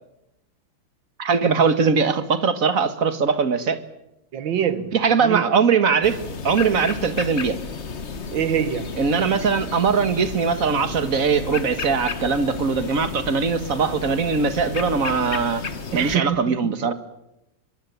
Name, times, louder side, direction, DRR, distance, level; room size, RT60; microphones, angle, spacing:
voice 1, 1.2-3.8 4.9-7.6 9.0-15.6 15.9-16.9, right 5 dB, 45° right, 1.9 m, -21 dB
voice 2, 4.3-5.0 5.2-5.5 8.3-9.0 15.9-16.9, right 9 dB, 80° right, 2.1 m, -25 dB
sound 1, 6.0-16.2, left 5 dB, 40° left, 1.6 m, -32 dB
23.5 x 23.0 x 9.4 m
omnidirectional pair, 2.0 m